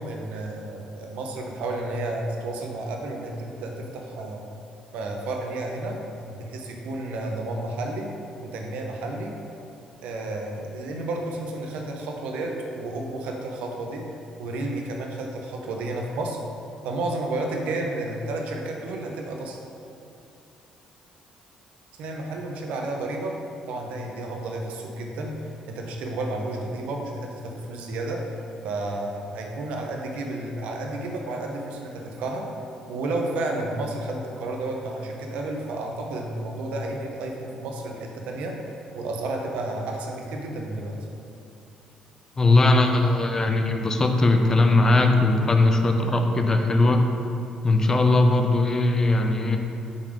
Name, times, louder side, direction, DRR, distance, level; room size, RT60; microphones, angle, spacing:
voice 1, 0.0-4.4 4.9-8.1 8.4-9.4 10.0-14.0 14.4-16.4 16.8-19.6 22.0-23.3 23.7-25.4 25.7-28.2 28.6-32.5 32.9-38.5 38.9-41.0, right 2 dB, 80° right, 1 dB, 0.8 m, -31 dB
voice 2, 42.4-47.0 47.6-49.6, left 2 dB, 25° left, 4 dB, 0.5 m, -19 dB
5.3 x 3.6 x 5.0 m, 2.6 s
cardioid pair, 110°, 2 cm